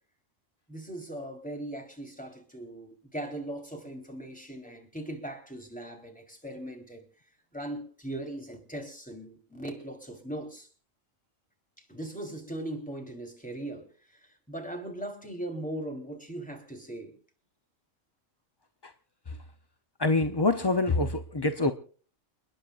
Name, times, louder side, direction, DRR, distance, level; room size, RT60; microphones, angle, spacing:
voice 1, 0.7-7.0 7.5-10.7 11.8-17.1, right 1 dB, 5° left, 3.7 m, -39 dB
voice 2, 20.0-21.7, left 2 dB, 25° left, 0.6 m, -26 dB
30.0 x 10.0 x 2.5 m
omnidirectional pair, 1.4 m